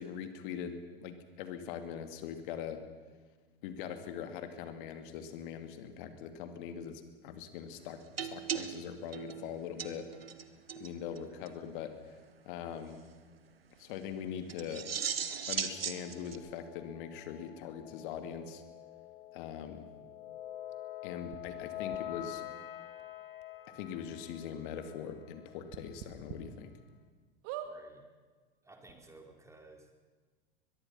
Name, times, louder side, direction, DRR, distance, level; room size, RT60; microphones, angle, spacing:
voice 1, 0.0-2.8 3.6-10.1 10.8-12.1 12.4-13.0 13.8-14.9 15.5-18.6 19.3-19.9 21.0-22.4 23.7-26.7, left 8 dB, 60° left, 8 dB, 2.7 m, -42 dB
sound 1, 8.2-10.4 10.7-10.9 11.2-11.3 11.5-11.6 14.5-16.4, right 7 dB, 85° right, 1.4 m, -37 dB
sound 2, 14.8-25.8, left 12 dB, 75° left, 1.5 m, -47 dB
sound 3, 21.3-21.4 21.9-22.0 23.0-23.1 23.4-23.5 23.9-24.0 25.7-26.4 26.9-27.0 27.4-27.7 28.6-28.7 28.8-28.9, right 11 dB, 55° right, 2.2 m, -42 dB
voice 2, 27.6-28.0 28.6-30.0, right 2 dB, 10° right, 2 dB, 4.2 m, -55 dB
22.5 x 22.0 x 5.8 m, 1.4 s
hypercardioid pair, 90°, 29 cm